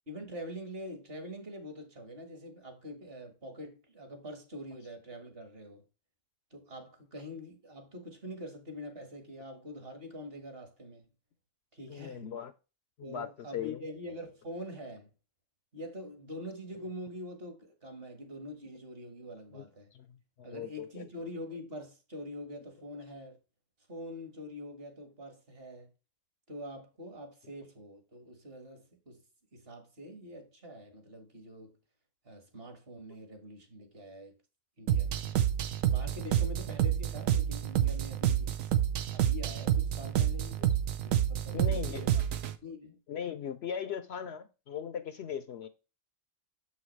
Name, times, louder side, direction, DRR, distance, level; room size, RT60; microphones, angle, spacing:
voice 1, 0.1-5.8 6.5-11.1 11.7-12.3 13.0-15.1 15.7-19.9 20.4-23.4 23.9-25.9 26.5-29.2 29.5-31.8 32.2-34.4 34.8-35.3 35.9-38.6 39.1-40.6 41.0-42.1 42.6-43.0, equal, 50° right, 1.8 m, -45 dB
voice 2, 11.9-12.5 13.0-13.8 19.5-19.6 19.9-21.1 41.5-42.2 43.1-45.7, left 8 dB, 65° left, 0.8 m, -39 dB
sound 1, 34.9-42.6, right 10 dB, 85° right, 1.1 m, -29 dB
6.9 x 5.7 x 3.1 m
omnidirectional pair, 1.3 m